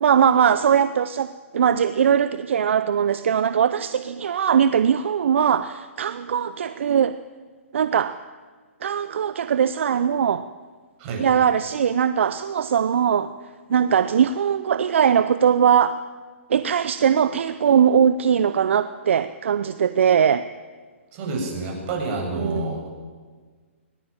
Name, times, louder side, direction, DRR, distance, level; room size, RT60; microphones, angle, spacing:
voice 1, 0.0-7.2 7.7-8.2 8.8-10.5 11.1-13.3 13.7-16.0 16.5-20.5 22.3-22.7, right 8 dB, 65° right, 13 dB, 0.7 m, -20 dB
voice 2, 21.1-22.8, right 3 dB, 35° right, 1 dB, 8.0 m, -28 dB
19.5 x 19.0 x 8.8 m, 1.5 s
hypercardioid pair, 135°, 7 cm